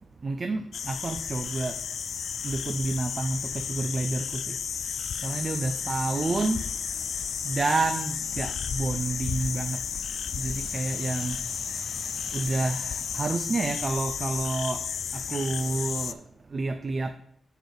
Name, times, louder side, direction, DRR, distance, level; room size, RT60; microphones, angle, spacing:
voice 1, 0.2-1.8 2.4-4.6 5.2-6.6 7.4-9.8 10.3-11.4 12.3-14.8 15.3-16.2 16.5-17.1, right 3 dB, 35° right, 8 dB, 0.4 m, -29 dB
sound 1, 0.7-16.1, left 7 dB, 70° left, 0.3 m, -33 dB
sound 2, 5.2-13.5, right 3 dB, 90° right, 1.0 m, -49 dB
6.6 x 4.8 x 4.7 m, 0.70 s
wide cardioid pair, 135°, 0 cm